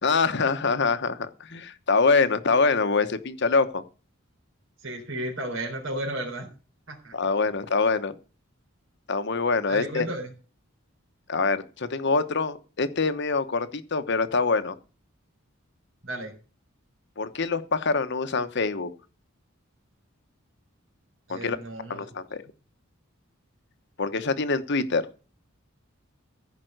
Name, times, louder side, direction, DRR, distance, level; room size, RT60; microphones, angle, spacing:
voice 1, 0.0-3.8 7.1-8.1 9.1-10.1 11.3-14.8 17.2-18.9 21.3-21.6 21.9-22.4 24.0-25.0, left 4 dB, 55° left, 10 dB, 1.0 m, -25 dB
voice 2, 4.8-6.5 6.9-7.1 9.7-10.3 16.0-16.3 21.3-22.0, right 1 dB, 65° right, 1 dB, 3.8 m, -33 dB
15.0 x 5.2 x 7.9 m, 0.37 s
head